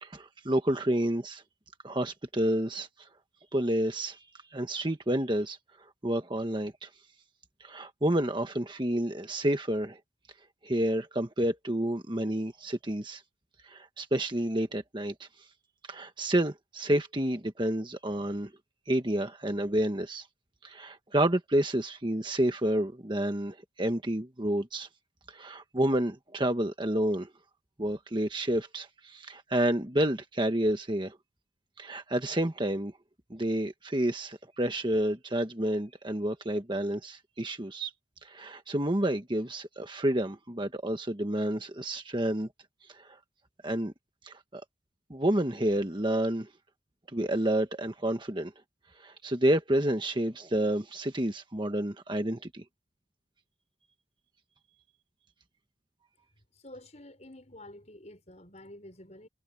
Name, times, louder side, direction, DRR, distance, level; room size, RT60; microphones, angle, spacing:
voice 1, 0.0-1.4 1.8-2.9 3.5-4.2 4.5-5.6 6.0-6.9 7.6-10.0 10.6-13.2 13.6-15.3 15.9-18.5 18.9-20.3 20.6-24.9 25.3-27.3 27.8-31.2 31.8-32.9 33.3-37.9 38.2-42.5 43.0-43.1 43.6-43.9 44.2-44.6 45.1-46.5 47.1-48.5 49.0-52.6, right 1 dB, 25° right, 1.4 m, -29 dB
voice 2, 56.5-59.3, left 1 dB, 35° left, 6.2 m, -49 dB
head